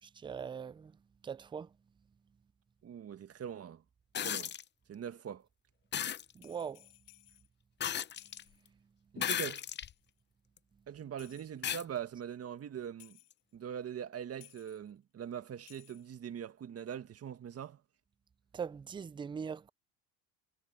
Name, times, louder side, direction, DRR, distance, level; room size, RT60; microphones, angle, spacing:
voice 1, 0.0-1.8 6.3-6.9 8.5-8.6 18.5-19.7, right 6 dB, 10° right, 0.4 m, -42 dB
voice 2, 2.8-3.8 4.2-4.5 4.9-5.5 9.1-9.6 10.9-13.2 13.5-17.8, right 9 dB, 35° right, 1.8 m, -42 dB
sound 1, 4.1-4.6 5.9-6.2 7.8-8.4 9.2-9.9 10.6-10.7 11.6-11.8 13.3-13.4, left 9 dB, 25° left, 0.7 m, -35 dB
sound 2, 6.3-7.5 8.1-8.6 9.6-10.1 11.2-11.8 13.0-13.4 14.4-14.9 15.6-16.2, left 30 dB, 80° left, 4.3 m, -60 dB
supercardioid pair, 110°, 42 cm